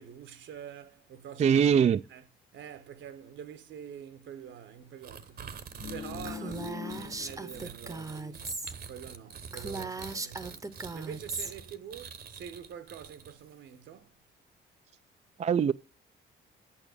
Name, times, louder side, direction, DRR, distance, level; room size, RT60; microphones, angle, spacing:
voice 1, 0.0-2.2 2.5-14.2, right 8 dB, 75° right, 1.1 m, -46 dB
voice 2, 1.4-2.0 15.4-15.7, right 7 dB, 35° right, 0.4 m, -22 dB
sound 1, 5.0-13.5, right 7 dB, 50° right, 1.0 m, -45 dB
sound 2, 5.4-8.1 8.4-8.5, left 9 dB, 70° left, 0.9 m, -43 dB
Female speech woman speaking, 6.2-8.7 9.1-9.2 9.5-11.5, right 3 dB, 15° right, 0.8 m, -38 dB
8.9 x 5.8 x 6.5 m
cardioid pair, 90°, 20 cm